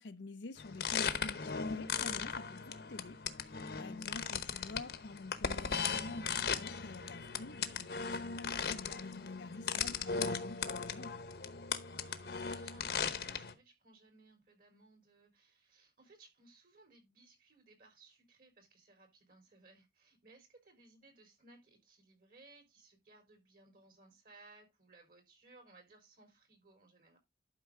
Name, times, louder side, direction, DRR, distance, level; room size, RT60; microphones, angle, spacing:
voice 1, 0.0-11.2, left 3 dB, 80° left, 0.7 m, -48 dB
sound 1, 0.6-13.5, left 6 dB, 60° left, 1.0 m, -38 dB
voice 2, 12.0-27.2, right 3 dB, 50° right, 4.3 m, -62 dB
11.5 x 5.4 x 3.7 m
head